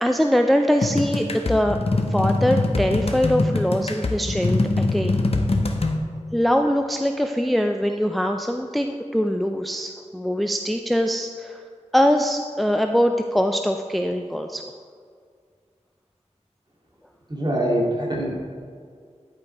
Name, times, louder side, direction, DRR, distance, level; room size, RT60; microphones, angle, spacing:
voice 1, 0.0-1.8 2.1-5.2 6.3-11.6 11.9-14.6, equal, ahead, 5 dB, 0.4 m, -22 dB
sound 1, 0.8-6.0, left 2 dB, 55° left, 0.8 m, -23 dB
voice 2, 17.3-18.3, right 1 dB, 35° right, -3 dB, 2.2 m, -23 dB
10.5 x 5.2 x 4.4 m, 2.1 s
wide cardioid pair, 50°, 12 cm